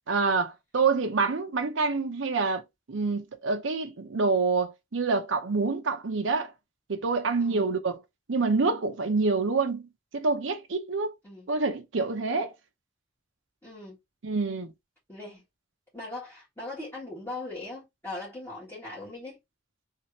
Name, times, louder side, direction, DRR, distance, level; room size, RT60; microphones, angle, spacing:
voice 1, 0.1-2.6 2.9-6.5 6.9-8.0 8.3-11.1 11.5-12.5 14.2-14.7, right 4 dB, 75° right, 0.7 m, -27 dB
voice 2, 13.6-14.0 15.1-15.4 15.9-19.4, left 2 dB, 10° left, 1.7 m, -39 dB
3.3 x 2.8 x 2.9 m
head